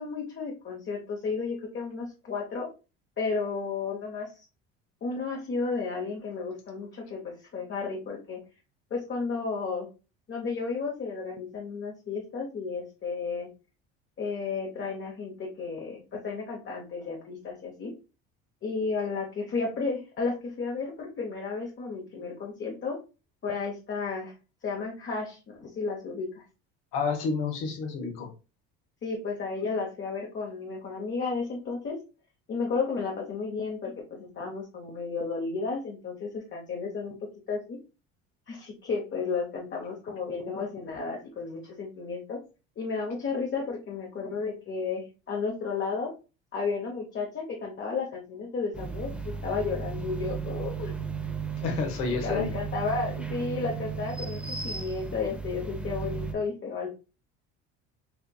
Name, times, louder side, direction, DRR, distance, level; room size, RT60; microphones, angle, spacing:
voice 1, 0.0-2.7 3.2-4.3 5.0-8.4 8.9-9.9 10.3-13.5 14.2-17.9 18.6-23.0 23.4-24.3 24.6-26.4 29.0-32.0 32.5-37.1 37.5-37.8 38.5-42.4 42.8-46.1 46.5-50.9 52.1-56.9, left 4 dB, 35° left, -1 dB, 1.0 m, -33 dB
voice 2, 26.9-28.3 51.6-52.5, left 4 dB, 85° left, 3 dB, 1.1 m, -29 dB
sound 1, 48.7-56.3, right 5 dB, 5° right, 0.7 m, -35 dB
4.4 x 2.5 x 2.3 m, 0.31 s
supercardioid pair, 85°, 33 cm